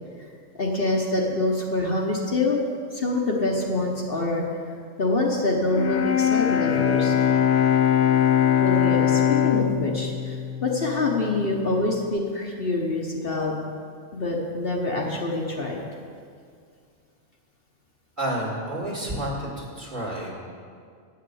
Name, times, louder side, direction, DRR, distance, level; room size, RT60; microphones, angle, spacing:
voice 1, 0.6-2.6 2.9-4.4 5.0-7.1 8.6-10.4 10.6-13.5 14.1-15.8, left 2 dB, 45° left, -1 dB, 1.3 m, -25 dB
Bowed string instrument, 5.7-11.7, left 9 dB, 65° left, 0.8 m, -22 dB
voice 2, 18.2-20.3, right 1 dB, 35° right, -4 dB, 2.1 m, -30 dB
9.7 x 6.9 x 7.9 m, 2.2 s
omnidirectional pair, 1.4 m